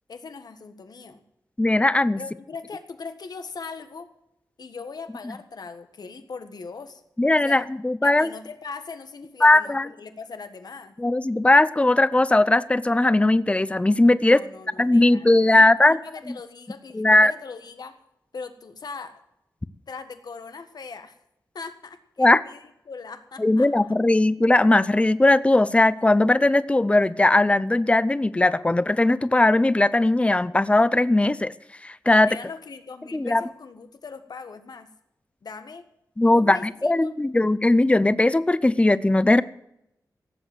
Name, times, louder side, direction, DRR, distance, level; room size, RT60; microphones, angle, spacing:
voice 1, 0.1-1.2 2.2-4.1 4.6-7.0 7.4-7.7 8.0-10.9 14.2-18.0 18.3-19.2 19.9-21.2 21.5-23.9 32.2-34.9 35.4-35.8 36.3-37.1, left 4 dB, 70° left, 9 dB, 1.6 m, -40 dB
voice 2, 1.6-2.2 7.2-8.3 9.4-9.9 11.0-14.4 14.8-16.0 16.9-17.3 22.2-22.4 23.4-31.5 31.8-32.4 33.1-33.4 36.2-39.4, left 2 dB, 15° left, 16 dB, 0.6 m, -19 dB
17.5 x 7.8 x 7.7 m, 0.82 s
cardioid pair, 65°, 7 cm